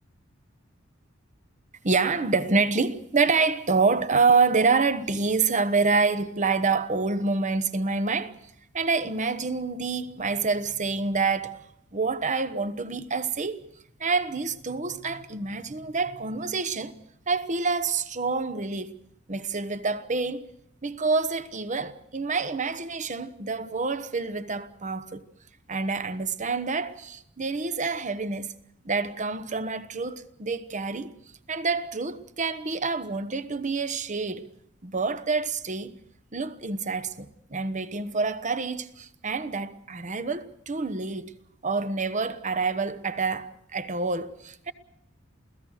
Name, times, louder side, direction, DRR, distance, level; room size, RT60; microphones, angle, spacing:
voice 1, 1.8-8.4 8.7-11.6 11.9-13.6 14.0-16.9 17.3-18.9 19.3-20.4 20.8-25.2 25.7-28.5 28.8-31.1 31.5-34.5 34.8-35.9 36.3-41.3 41.6-44.7, right 4 dB, 40° right, 1.0 m, -27 dB
28.5 x 16.5 x 6.5 m
head